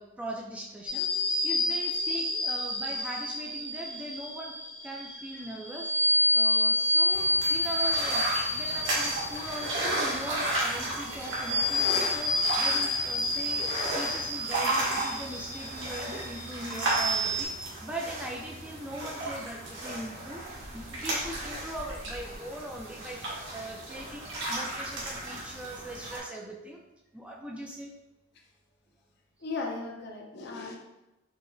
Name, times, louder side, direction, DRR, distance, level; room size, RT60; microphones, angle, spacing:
voice 1, 0.0-4.5 4.8-5.9 6.3-8.2 8.5-20.4 20.7-26.8 27.1-27.9, right 1 dB, 5° right, -1 dB, 0.4 m, -40 dB
sound 1, 0.9-17.4, left 1 dB, 25° right, 0.8 m, -29 dB
sound 2, 7.1-26.2, right 1 dB, 70° right, 1.3 m, -34 dB
voice 2, 29.4-30.8, left 3 dB, 55° left, 1 dB, 0.6 m, -37 dB
4.8 x 2.8 x 2.6 m, 0.94 s
head